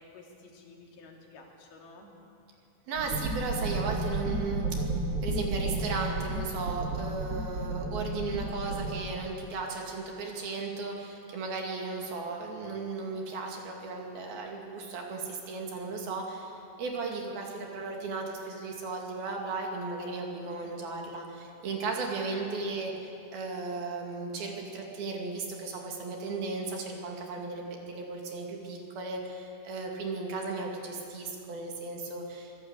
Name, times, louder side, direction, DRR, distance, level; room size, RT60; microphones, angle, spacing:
voice 1, 0.0-2.1 20.6-20.8 22.3-22.7, left 3 dB, 65° left, 0 dB, 4.7 m, -52 dB
sound 1, 2.9-8.9, right 2 dB, 35° right, 4.5 m, -32 dB
voice 2, 2.9-5.0 5.2-32.6, right 3 dB, 60° right, 0 dB, 4.2 m, -36 dB
24.0 x 17.0 x 8.3 m, 2.7 s
omnidirectional pair, 4.9 m